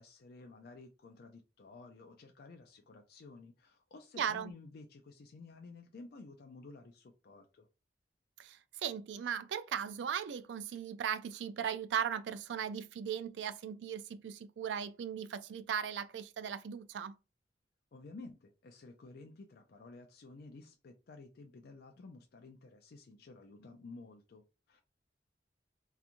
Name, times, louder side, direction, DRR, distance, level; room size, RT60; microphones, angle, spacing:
voice 1, 0.0-7.7 17.9-24.8, left 3 dB, 60° left, 0.4 m, -53 dB
voice 2, 4.2-4.5 8.4-17.1, right 8 dB, 80° right, 0.3 m, -38 dB
2.9 x 2.3 x 2.5 m
head